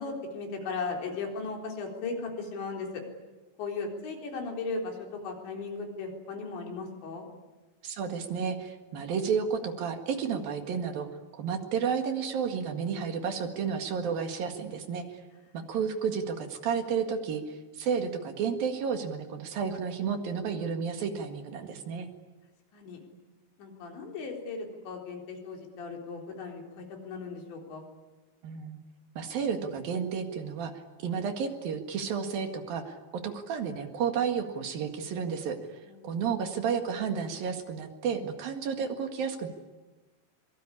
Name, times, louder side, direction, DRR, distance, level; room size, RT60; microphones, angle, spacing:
voice 1, 0.0-3.0 3.6-7.3 22.7-23.0 23.6-27.9 35.8-36.2, left 4 dB, 80° left, 2 dB, 6.2 m, -37 dB
voice 2, 7.8-11.1 11.3-15.2 15.7-22.1 28.4-28.8 29.2-30.7 31.0-33.0 33.2-35.6 36.0-39.5, right 6 dB, 60° right, 6 dB, 3.4 m, -31 dB
25.5 x 23.5 x 9.9 m, 1.2 s
omnidirectional pair, 5.0 m